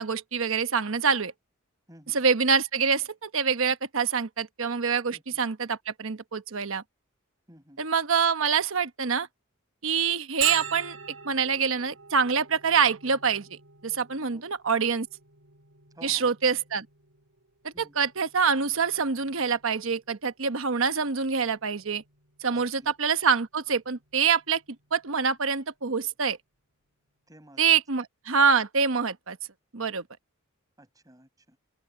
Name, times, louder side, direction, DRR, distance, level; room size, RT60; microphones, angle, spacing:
voice 1, 0.0-1.3 2.1-6.8 7.8-9.3 9.8-11.0 11.2-15.1 16.0-16.9 17.6-22.0 22.4-24.6 24.9-26.4 27.6-29.4 29.7-30.0, right 6 dB, 70° right, 1.1 m, -25 dB
voice 2, 1.9-2.2 5.1-5.4 7.5-7.8 14.3-14.4 15.9-16.3 17.7-17.9 22.5-22.9 27.3-27.8 30.8-31.6, right 1 dB, 15° right, 5.8 m, -52 dB
Bell, 10.4-25.8, right 9 dB, 85° right, 5.0 m, -42 dB
open air
head